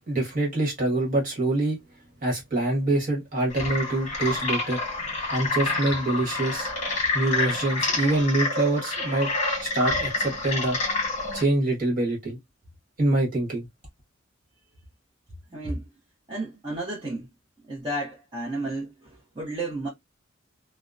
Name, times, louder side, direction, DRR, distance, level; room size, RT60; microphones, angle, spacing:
voice 1, 0.1-1.8 2.2-4.8 5.3-6.7 7.1-9.3 9.6-10.8 11.3-12.4 13.0-13.7, right 2 dB, 40° right, 1.2 m, -25 dB
sound 1, 3.5-11.4, left 2 dB, 35° left, 1.1 m, -28 dB
voice 2, 15.5-15.9 16.3-17.3 17.7-19.9, right 2 dB, 25° right, 0.7 m, -32 dB
2.7 x 2.0 x 2.3 m
head